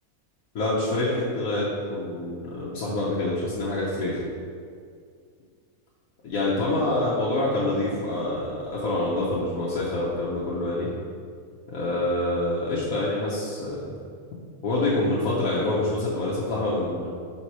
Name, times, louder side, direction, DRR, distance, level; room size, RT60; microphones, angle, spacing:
voice 1, 0.5-4.2 6.2-10.9 11.7-13.8 14.6-17.1, left 2 dB, 75° left, -8 dB, 1.4 m, -26 dB
5.8 x 4.3 x 4.6 m, 2.2 s
omnidirectional pair, 1.5 m